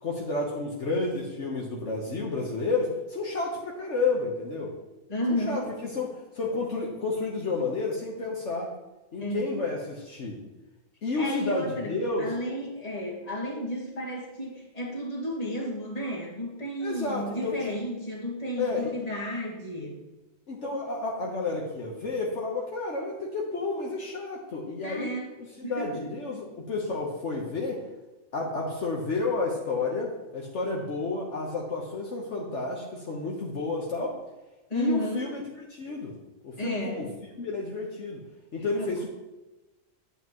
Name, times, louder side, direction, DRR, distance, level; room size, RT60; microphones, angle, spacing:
voice 1, 0.0-4.7 5.3-8.7 9.1-10.4 11.0-12.3 16.8-17.8 18.6-18.9 20.5-25.1 25.4-27.8 28.3-34.2 34.7-36.1 36.4-37.1 37.4-38.2 38.5-39.1, left 3 dB, 65° left, -2 dB, 1.4 m, -31 dB
voice 2, 5.1-5.6 9.2-9.5 11.2-11.9 12.2-20.0 24.8-25.3 25.6-26.1 34.7-35.3 36.6-37.0 38.6-38.9, equal, 30° left, -2 dB, 1.9 m, -32 dB
10.0 x 8.3 x 3.0 m, 1.1 s
omnidirectional pair, 1.4 m